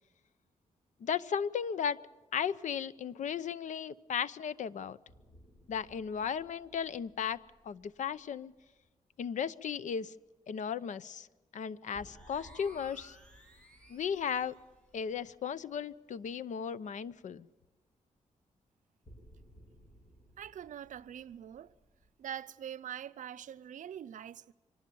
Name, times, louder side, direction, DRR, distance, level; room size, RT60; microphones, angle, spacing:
voice 1, 1.0-2.0 2.3-5.0 5.7-7.4 7.6-8.5 9.2-10.1 10.5-11.3 11.5-13.2 13.9-14.5 14.9-17.5, left 7 dB, 75° left, 0.7 m, -35 dB
sound 1, 5.1-9.2 11.9-16.3 16.6-16.7 19.0-22.1, equal, 30° left, 7.0 m, -61 dB
sound 2, 12.0-14.7, right 1 dB, 10° left, 4.3 m, -57 dB
voice 2, 20.4-21.7 22.2-24.5, right 9 dB, 80° right, 0.6 m, -44 dB
24.5 x 19.0 x 7.0 m
wide cardioid pair, 155°, 13 cm